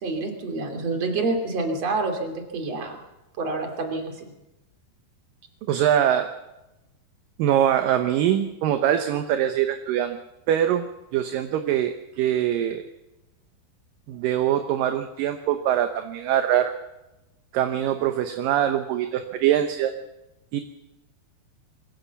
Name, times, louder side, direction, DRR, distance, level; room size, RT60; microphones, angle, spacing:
voice 1, 0.0-3.0 3.4-4.3, right 3 dB, 45° right, 4 dB, 3.7 m, -28 dB
voice 2, 5.7-6.3 7.4-10.2 10.5-10.9 11.1-12.8 14.1-16.7 17.5-19.9 20.5-20.6, right 10 dB, 70° right, 7 dB, 2.4 m, -23 dB
22.5 x 16.0 x 7.1 m, 0.95 s
omnidirectional pair, 4.5 m